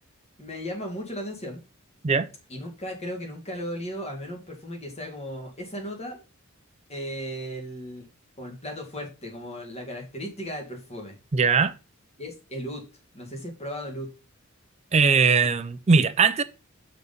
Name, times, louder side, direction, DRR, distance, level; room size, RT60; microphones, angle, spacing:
voice 1, 0.4-1.6 2.5-6.2 6.9-8.1 8.4-11.2 12.2-12.8 13.1-14.1, equal, 30° left, 2.1 m, -36 dB
voice 2, 11.3-11.7 14.9-16.4, right 5 dB, 30° right, 0.5 m, -20 dB
6.6 x 4.1 x 5.3 m
head